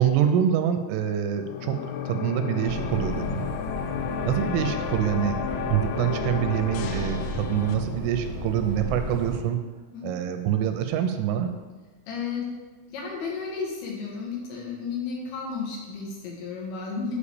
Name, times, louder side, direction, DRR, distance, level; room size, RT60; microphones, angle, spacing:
voice 1, 0.0-1.8 2.1-3.4 4.2-9.6 10.0-11.6, right 10 dB, 85° right, 7 dB, 3.0 m, -25 dB
sound 1, 1.3-7.7, left 8 dB, 90° left, 3.3 m, -32 dB
sound 2, 2.7-9.4, equal, 10° left, 0.9 m, -34 dB
voice 2, 12.1-12.5 12.9-17.2, left 5 dB, 70° left, -2 dB, 3.8 m, -33 dB
8.4 x 4.9 x 6.9 m, 1.3 s
omnidirectional pair, 5.7 m